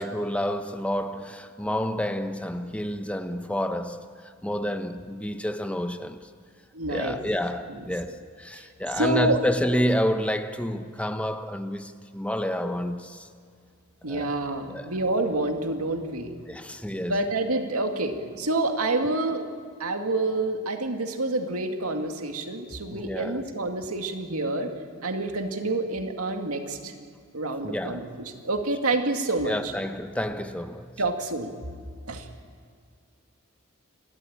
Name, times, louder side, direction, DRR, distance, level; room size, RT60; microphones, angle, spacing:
voice 1, 0.0-4.0 4.4-6.2 6.9-13.3 14.1-14.3 14.7-14.9 16.5-17.2 22.9-23.5 27.6-28.1 29.4-30.9, equal, 5° left, 0.9 m, -29 dB
voice 2, 6.7-7.2 7.7-7.9 8.5-8.6 8.9-9.4 14.0-16.3 16.9-19.4 19.8-24.7 25.0-26.9 27.3-29.7 31.0-31.5 32.1-32.3, right 2 dB, 90° right, 2.3 m, -28 dB
29.0 x 13.0 x 8.9 m
head